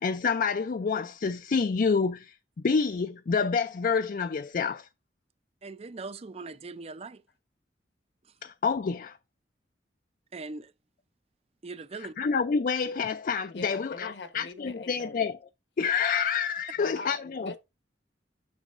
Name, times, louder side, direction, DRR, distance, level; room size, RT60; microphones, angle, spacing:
voice 1, 0.0-2.4 2.6-4.9 8.4-9.2 12.0-15.4 15.8-17.5, left 5 dB, 50° left, 0.4 m, -28 dB
voice 2, 5.6-7.2 10.3-10.7 11.6-12.1, right 3 dB, 35° right, 0.5 m, -40 dB
voice 3, 13.5-15.2 16.8-17.6, left 3 dB, 70° left, 1.1 m, -42 dB
10.0 x 6.3 x 2.5 m
head